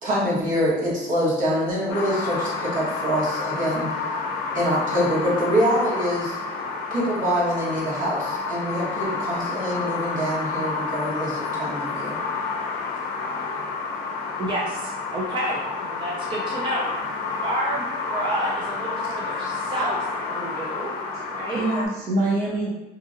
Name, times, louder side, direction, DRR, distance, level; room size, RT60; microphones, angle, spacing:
voice 1, 0.0-3.9 4.5-6.3 6.9-12.2, equal, 50° right, -5 dB, 1.2 m, -25 dB
sound 1, 1.9-21.9, left 4 dB, 80° left, 0.5 m, -29 dB
voice 2, 14.4-16.9 17.4-20.0 20.3-20.9 21.3-21.6, right 1 dB, 30° right, -3 dB, 0.5 m, -29 dB
voice 3, 19.0-19.6 21.1-22.7, right 2 dB, 70° right, -4 dB, 0.9 m, -27 dB
2.8 x 2.6 x 2.5 m, 1.1 s
cardioid pair, 110°, 17 cm